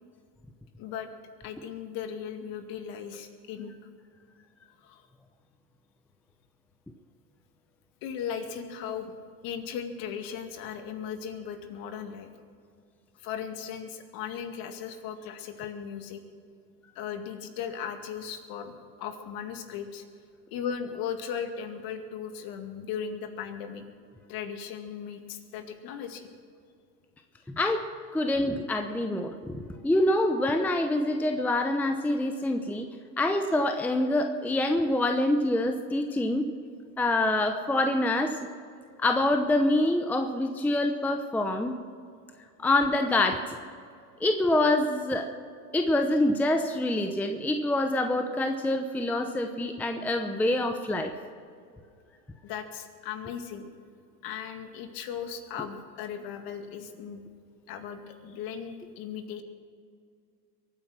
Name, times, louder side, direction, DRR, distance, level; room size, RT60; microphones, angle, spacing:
voice 1, 0.8-1.1 1.4-3.7 4.8-5.1 8.0-9.1 9.4-12.3 13.2-16.2 17.0-18.7 19.0-20.0 20.5-23.8 24.3-26.3 52.4-53.7 54.2-57.2 57.7-59.4, left 7 dB, 45° left, 6 dB, 2.2 m, -37 dB
voice 2, 27.5-27.9 28.1-32.9 33.2-36.5 37.0-38.4 39.0-41.7 42.6-43.6 44.2-45.3 45.7-51.1, left 1 dB, 5° left, 6 dB, 0.7 m, -26 dB
23.0 x 9.5 x 6.2 m, 2.3 s
hypercardioid pair, 115°, 50 cm